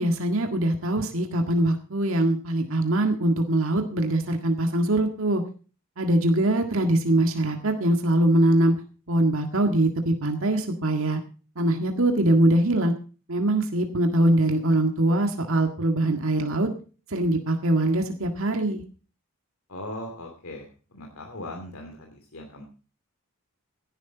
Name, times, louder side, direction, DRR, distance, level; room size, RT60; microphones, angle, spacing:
voice 1, 0.0-5.4 6.0-8.7 9.1-11.2 11.6-12.9 13.3-16.7 17.1-18.8, right 1 dB, 70° right, 4 dB, 1.8 m, -22 dB
voice 2, 19.7-22.6, left 1 dB, 80° left, 2 dB, 2.7 m, -39 dB
16.5 x 11.0 x 4.0 m, 0.36 s
head